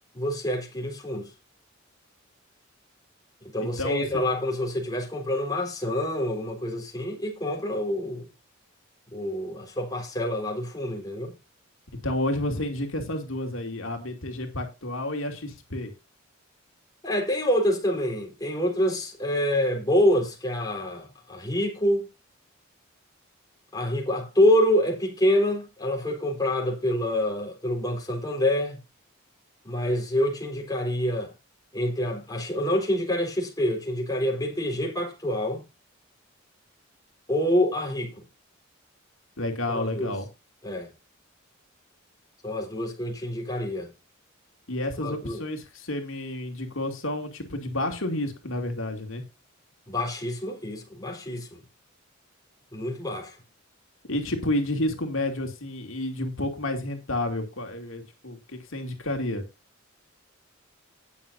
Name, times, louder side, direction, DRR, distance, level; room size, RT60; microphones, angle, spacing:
voice 1, 0.1-1.3 3.4-8.3 9.1-11.3 17.0-22.1 23.7-28.8 29.6-31.3 31.7-35.6 37.3-38.2 39.7-40.1 40.6-40.9 42.4-43.9 45.0-45.4 49.9-51.6 52.7-53.4, left 1 dB, 20° left, 4.0 m, -26 dB
voice 2, 3.6-4.2 12.0-15.9 39.4-40.3 44.7-49.2 54.1-59.4, left 1 dB, 70° left, 2.7 m, -30 dB
19.0 x 7.0 x 2.7 m
head